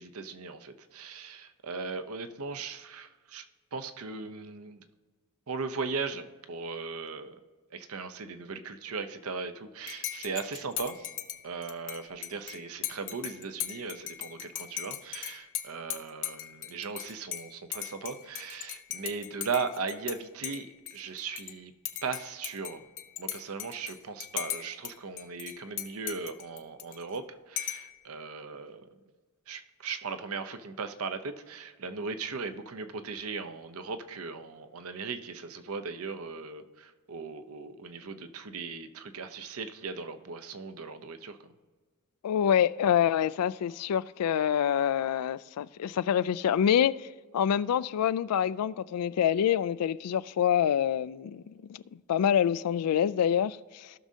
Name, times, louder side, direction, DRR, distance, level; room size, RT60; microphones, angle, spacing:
voice 1, 0.0-3.4 3.7-4.9 5.5-7.4 7.7-11.1 11.4-21.7 22.0-22.8 23.2-28.9 29.5-41.5, right 4 dB, 70° right, 0.7 m, -38 dB
Dishes pots and pans / Cutlery silverware / Chink clink, 9.9-20.2 20.4-21.5 21.8-24.9 25.2-27.2 27.6-27.9, left 11 dB, 55° left, 0.7 m, -38 dB
voice 2, 42.2-47.1 47.3-51.8 52.1-53.9, left 9 dB, 90° left, 0.3 m, -26 dB
17.0 x 6.2 x 2.7 m
head